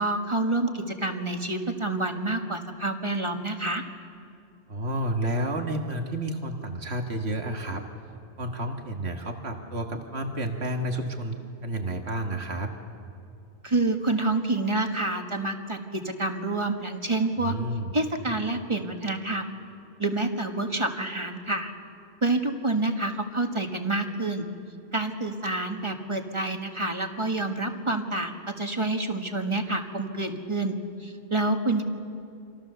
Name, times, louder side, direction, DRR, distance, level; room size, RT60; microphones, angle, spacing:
voice 1, 0.0-3.8 13.6-17.6 17.9-19.5 20.0-21.7 22.2-24.5 24.9-31.8, right 2 dB, 30° right, 4 dB, 1.7 m, -28 dB
voice 2, 4.7-7.8 8.4-11.4 11.6-12.7 17.4-17.9, right 1 dB, 85° right, 3 dB, 2.0 m, -30 dB
28.0 x 25.5 x 6.9 m, 2.5 s
omnidirectional pair, 1.1 m